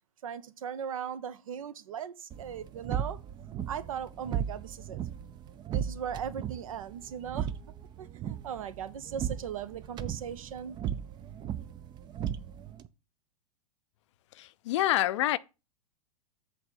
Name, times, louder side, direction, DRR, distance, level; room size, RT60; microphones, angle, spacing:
voice 1, 0.2-3.2 3.7-5.0 5.7-7.5 8.0-10.8, right 8 dB, 65° right, 0.8 m, -38 dB
sound 1, 2.3-12.9, right 9 dB, 25° right, 0.5 m, -37 dB
voice 2, 14.3-15.4, left 14 dB, 55° left, 0.5 m, -27 dB
8.0 x 3.5 x 6.2 m
figure-of-eight pair, 95°, 19 cm